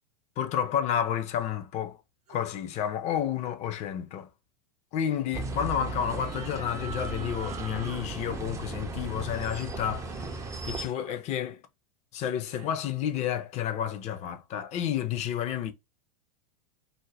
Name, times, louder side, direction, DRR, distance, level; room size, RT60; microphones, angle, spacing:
voice 1, 0.4-2.0 2.3-4.3 4.9-10.4 10.6-11.6 12.1-15.7, left 9 dB, 35° left, 0.5 m, -30 dB
sound 1, 2.3-2.5 6.1-8.0 10.9-11.2 12.4-12.7, right 5 dB, 70° right, 0.6 m, -45 dB
sound 2, 5.3-10.9, right 3 dB, 15° right, 0.4 m, -36 dB
2.5 x 2.0 x 3.2 m
hypercardioid pair, 90°, 21 cm